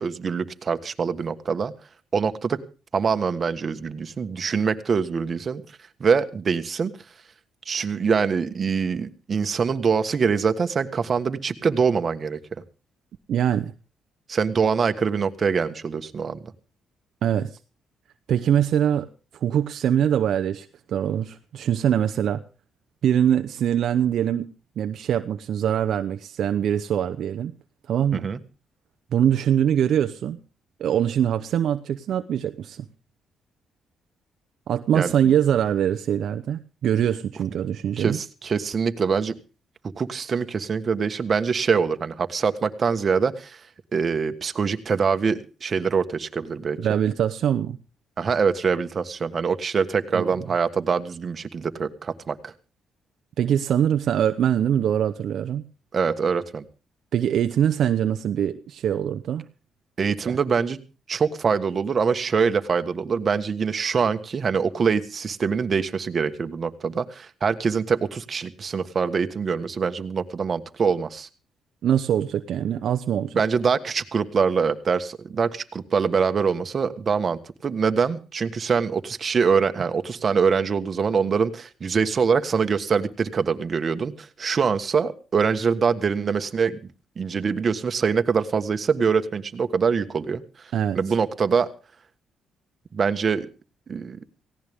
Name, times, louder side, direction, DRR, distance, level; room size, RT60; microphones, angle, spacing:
voice 1, 0.0-1.7 2.1-2.6 2.9-5.6 6.0-6.9 7.7-12.4 14.3-16.4 28.1-28.4 34.9-35.1 38.0-39.3 40.0-43.6 43.9-46.8 48.2-52.5 55.9-56.6 60.0-60.8 61.1-71.3 73.3-86.8 87.2-91.7 92.9-93.5 93.9-94.2, right 5 dB, 45° right, 9 dB, 1.4 m, -24 dB
voice 2, 13.3-13.7 17.2-17.6 18.3-19.1 19.4-22.4 23.0-27.5 27.9-28.3 29.1-30.4 30.8-32.9 34.7-38.2 46.8-47.8 50.1-50.3 53.4-55.6 57.1-59.4 60.2-60.4 71.8-73.4 90.7-91.0, right 9 dB, 70° right, 9 dB, 0.8 m, -23 dB
18.0 x 17.0 x 3.6 m, 0.35 s
cardioid pair, 90°, 0 cm